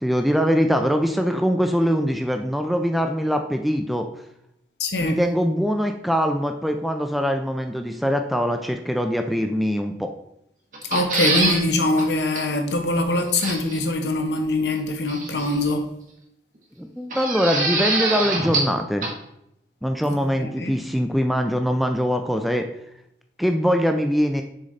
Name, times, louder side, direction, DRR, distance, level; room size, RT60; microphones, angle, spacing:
voice 1, 0.0-4.1 5.0-10.1 16.8-19.1 19.8-22.7 23.4-24.4, equal, ahead, 0.3 m, -22 dB
voice 2, 4.8-5.2 10.9-15.9 20.1-20.8, left 2 dB, 75° left, 0.9 m, -23 dB
sound 1, 10.7-11.6 12.0-12.1 12.4-12.5 13.4-13.8 15.1-15.7 17.1-18.8 19.0-19.1, right 3 dB, 45° right, 1.1 m, -24 dB
6.5 x 3.9 x 4.0 m
head